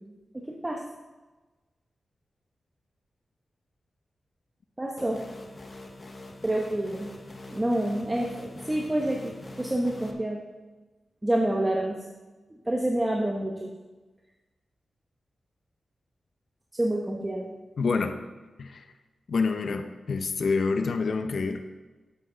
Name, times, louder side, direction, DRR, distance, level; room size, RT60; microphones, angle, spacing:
voice 1, 0.3-0.8 4.8-5.2 6.4-7.1 7.5-9.3 9.6-10.4 11.2-12.0 12.7-13.7 16.7-17.5, right 1 dB, 15° right, -1 dB, 1.1 m, -27 dB
sound 1, 5.0-10.1, left 2 dB, 40° left, 1.2 m, -44 dB
voice 2, 17.8-18.2 18.6-18.8 19.3-21.6, left 4 dB, 70° left, 7 dB, 0.7 m, -27 dB
11.5 x 8.0 x 3.9 m, 1.2 s
wide cardioid pair, 95°, 0 cm